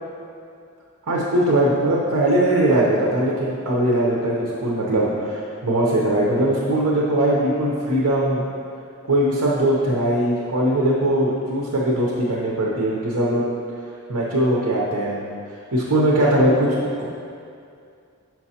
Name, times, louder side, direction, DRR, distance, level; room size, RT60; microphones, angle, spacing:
voice 1, 1.1-8.4 9.0-13.5 14.1-15.2 15.7-17.0, right 1 dB, 75° right, -4 dB, 0.8 m, -20 dB
6.0 x 5.8 x 2.8 m, 2.4 s
head